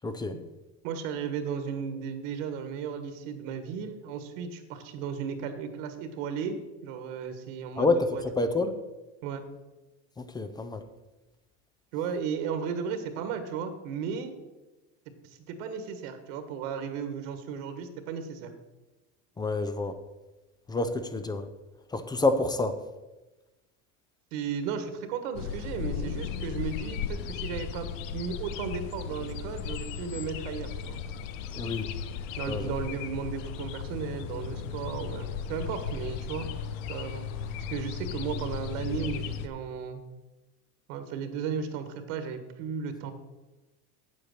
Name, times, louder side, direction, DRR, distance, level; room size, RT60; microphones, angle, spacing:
voice 1, 0.0-0.4 7.8-8.8 10.2-10.9 19.4-20.0 20.7-21.5 21.9-22.8 31.6-31.9 32.5-32.8, left 3 dB, 10° left, 10 dB, 0.4 m, -28 dB
voice 2, 0.8-6.6 6.8-8.2 9.2-9.4 11.9-14.3 15.2-18.5 24.3-27.9 28.1-31.0 32.4-36.5 36.9-37.3 37.7-40.0 40.9-43.1, right 6 dB, 80° right, 9 dB, 1.5 m, -35 dB
sound 1, 25.3-39.5, left 7 dB, 85° left, 0.9 m, -36 dB
8.5 x 7.8 x 6.5 m, 1.1 s
cardioid pair, 145°, 38 cm